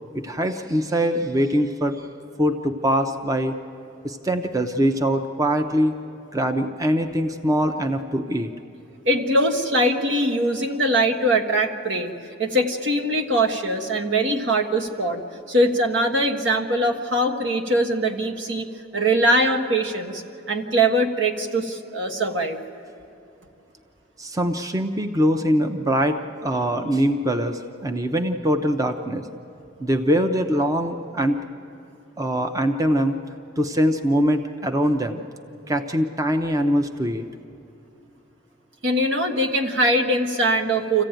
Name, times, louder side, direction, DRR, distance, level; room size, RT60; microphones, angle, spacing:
voice 1, 0.1-2.0 2.4-3.5 4.0-5.9 6.3-8.5 24.2-29.3 29.8-31.4 32.2-33.2 33.6-35.2 35.7-37.2, equal, 20° right, 6 dB, 0.6 m, -23 dB
voice 2, 9.0-12.1 12.4-15.2 15.5-22.6 38.8-41.0, right 1 dB, 70° right, 5 dB, 1.5 m, -22 dB
26.5 x 15.0 x 9.0 m, 2.7 s
head